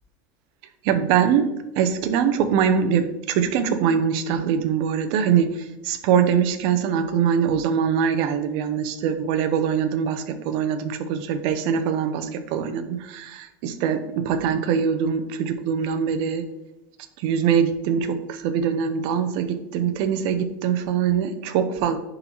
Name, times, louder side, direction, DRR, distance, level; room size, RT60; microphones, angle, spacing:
voice 1, 0.8-16.5 17.2-22.0, right 7 dB, 55° right, 9 dB, 0.7 m, -23 dB
11.0 x 3.9 x 3.0 m, 0.94 s
supercardioid pair, 155°, 10 cm